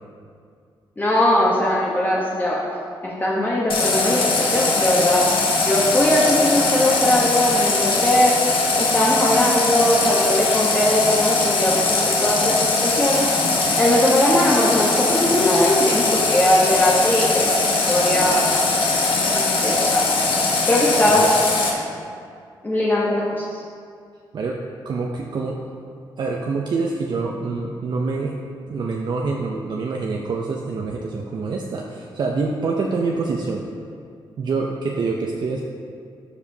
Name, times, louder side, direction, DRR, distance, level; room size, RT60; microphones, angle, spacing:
voice 1, 1.0-2.6 3.0-5.3 5.6-8.4 8.8-13.3 13.8-18.4 18.9-19.0 19.3-20.0 20.7-21.2 22.6-23.5, left 1 dB, 20° left, -5 dB, 1.0 m, -20 dB
Water tap faucet, 3.7-21.7, left 3 dB, 80° left, 1.1 m, -21 dB
voice 2, 24.8-25.6 26.2-28.4 28.7-33.6 34.4-35.6, right 4 dB, 55° right, 0 dB, 0.6 m, -26 dB
12.0 x 4.9 x 2.7 m, 2.3 s
cardioid pair, 90°, 9 cm